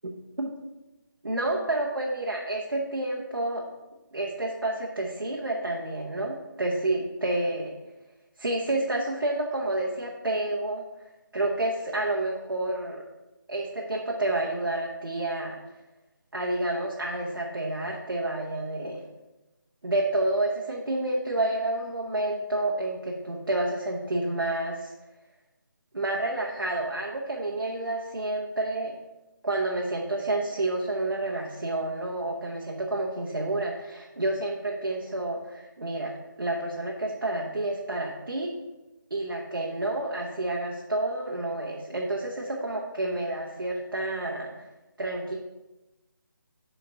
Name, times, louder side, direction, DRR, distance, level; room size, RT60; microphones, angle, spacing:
voice 1, 1.2-3.6 4.1-7.7 8.4-10.8 11.3-13.0 13.5-15.6 16.3-19.0 19.8-24.9 25.9-29.0 29.4-38.5 39.1-44.5 45.0-45.4, right 2 dB, 80° right, -1 dB, 0.9 m, -29 dB
5.2 x 4.4 x 5.0 m, 1.0 s
figure-of-eight pair, 160°, 11 cm